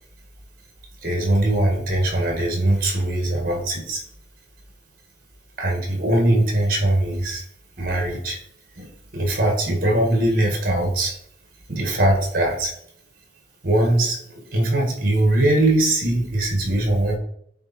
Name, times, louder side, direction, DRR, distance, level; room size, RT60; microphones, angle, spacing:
voice 1, 1.0-4.0 5.6-7.4 7.8-8.4 8.8-11.1 11.7-12.7 13.6-14.2 14.5-17.2, right 1 dB, 50° right, 2 dB, 1.9 m, -21 dB
8.6 x 3.5 x 4.4 m, 0.69 s
head